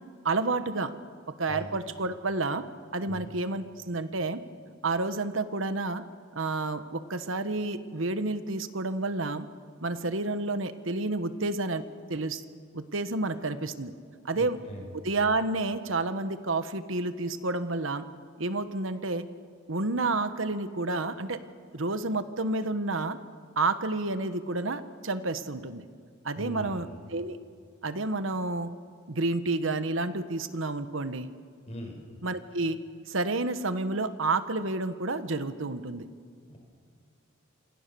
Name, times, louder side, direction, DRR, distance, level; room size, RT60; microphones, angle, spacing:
voice 1, 0.2-0.9 1.3-2.6 2.9-4.4 4.8-6.0 6.3-9.5 9.8-11.8 12.1-12.4 12.7-13.9 14.2-14.6 15.0-18.0 18.4-19.2 19.7-21.4 21.7-23.2 23.6-25.8 26.2-27.4 27.8-28.7 29.1-31.3 32.2-32.8 33.1-36.0, right 3 dB, 75° right, 11 dB, 1.3 m, -30 dB
voice 2, 14.3-14.9 26.3-26.9 31.7-32.0 36.5-36.6, equal, 35° left, 2 dB, 5.2 m, -40 dB
27.5 x 27.0 x 7.0 m, 2.1 s
head